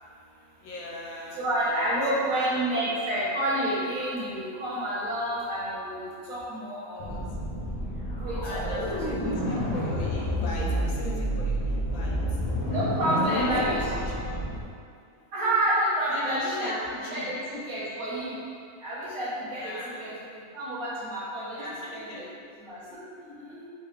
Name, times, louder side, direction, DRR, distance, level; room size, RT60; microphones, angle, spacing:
voice 1, 0.6-2.9 6.6-6.7 6.9-7.2 8.4-12.4 13.1-14.5 16.1-17.4 19.5-20.2 21.6-22.2, left 1 dB, 85° left, -2 dB, 1.1 m, -41 dB
voice 2, 1.3-7.0 8.2-8.6 12.6-13.8 15.3-16.7 17.1-17.3 17.7-18.4 18.8-19.7 20.0-20.1 20.5-22.2 22.7-23.6, right 1 dB, 85° right, -10 dB, 1.5 m, -29 dB
sound 1, 7.0-14.6, equal, 55° left, 0.5 m, -29 dB
4.2 x 2.4 x 3.2 m, 2.3 s
omnidirectional pair, 1.5 m